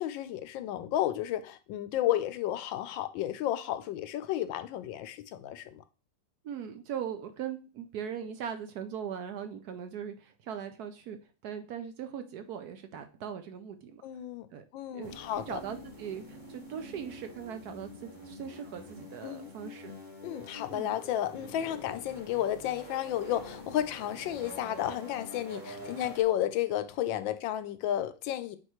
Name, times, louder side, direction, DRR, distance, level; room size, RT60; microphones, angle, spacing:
voice 1, 0.0-5.8 14.0-15.6 19.2-19.5 20.2-28.6, left 12 dB, 85° left, 1.4 m, -32 dB
voice 2, 6.4-14.0 14.5-14.6 14.9-19.9 20.7-21.0, right 8 dB, 70° right, 1.0 m, -40 dB
sound 1, 15.0-26.2, equal, 10° right, 1.3 m, -46 dB
8.8 x 4.2 x 3.0 m
omnidirectional pair, 2.0 m